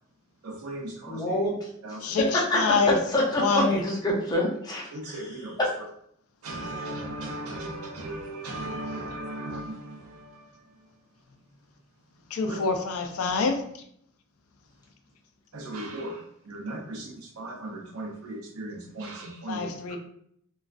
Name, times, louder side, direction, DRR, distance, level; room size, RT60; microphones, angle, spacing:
voice 1, 0.4-1.5 1.8-2.3 3.5-3.7 4.9-5.6 6.4-10.8 12.5-12.6 15.5-20.0, right 1 dB, 90° right, 2 dB, 0.5 m, -37 dB
voice 2, 1.1-1.5 2.3-2.6 2.9-4.9, left 1 dB, 20° left, -4 dB, 0.6 m, -26 dB
voice 3, 2.0-3.8 12.3-13.6 19.5-20.0, left 4 dB, 85° left, 5 dB, 0.4 m, -26 dB
2.3 x 2.3 x 2.4 m, 0.69 s
head